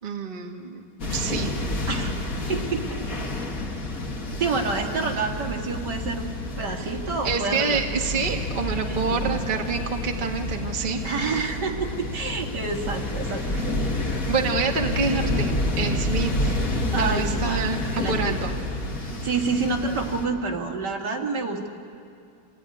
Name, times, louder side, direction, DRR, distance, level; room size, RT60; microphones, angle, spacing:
voice 1, 0.0-0.8 1.1-1.5 7.2-11.0 13.5-13.7 14.3-16.5 17.0-18.5, right 5 dB, 30° right, 2 dB, 1.5 m, -27 dB
sound 1, 1.0-20.2, left 1 dB, 45° left, 2.4 m, -29 dB
voice 2, 2.5-3.0 4.4-7.8 8.9-9.2 11.0-13.4 13.7-13.9 16.9-17.6 17.9-18.4 19.1-21.7, right 4 dB, 60° right, 1 dB, 2.6 m, -28 dB
27.0 x 16.0 x 9.8 m, 2.4 s
omnidirectional pair, 2.1 m